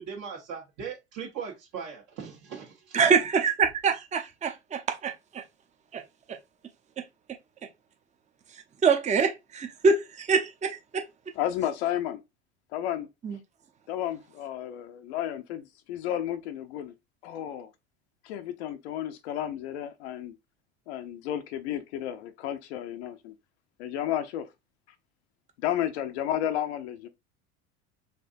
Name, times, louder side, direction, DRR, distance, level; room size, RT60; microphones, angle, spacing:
voice 1, 0.0-3.0, right 6 dB, 55° right, 1.3 m, -39 dB
voice 2, 2.9-5.4 5.9-6.0 6.3-6.4 8.8-11.0 13.2-13.4, right 5 dB, 20° right, 0.7 m, -25 dB
voice 3, 11.4-12.2 12.7-13.1 13.9-15.6 15.9-16.9 17.2-17.7 18.3-20.3 20.9-23.3 23.8-24.4 25.6-27.1, left 11 dB, 75° left, 0.7 m, -32 dB
4.4 x 2.7 x 2.5 m
hypercardioid pair, 90°, 33 cm